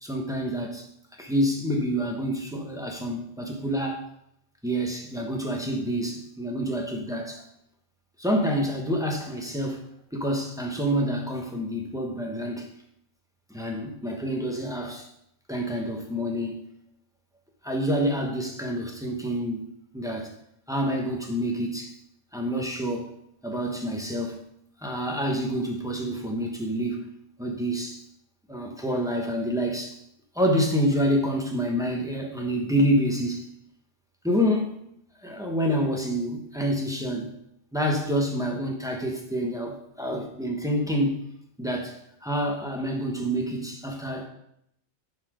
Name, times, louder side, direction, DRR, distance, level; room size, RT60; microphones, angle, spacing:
voice 1, 0.0-0.8 1.2-4.0 4.6-7.4 8.2-9.8 10.1-12.7 13.5-15.1 15.5-16.6 17.6-20.3 20.7-21.9 22.3-23.1 23.4-24.4 24.8-27.1 27.4-28.0 28.5-29.9 30.3-33.5 34.2-34.8 35.2-37.3 37.7-41.2 41.6-44.3, equal, 5° right, 0 dB, 1.0 m, -27 dB
7.9 x 4.3 x 5.0 m, 0.75 s
omnidirectional pair, 1.2 m